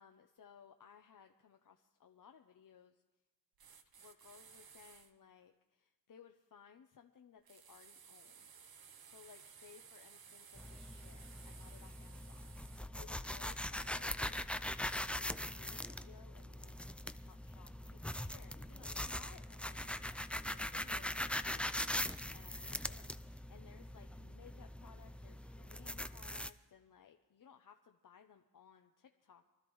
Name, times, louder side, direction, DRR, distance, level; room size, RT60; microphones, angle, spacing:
voice 1, 0.0-3.0 4.0-29.5, left 7 dB, 60° left, 5 dB, 0.7 m, -62 dB
sound 1, 3.6-5.1 7.5-12.8, right 7 dB, 80° right, 0.9 m, -58 dB
sound 2, 10.6-26.5, left 1 dB, 5° left, 0.4 m, -42 dB
24.0 x 12.5 x 3.1 m, 1.1 s
wide cardioid pair, 80°, 36 cm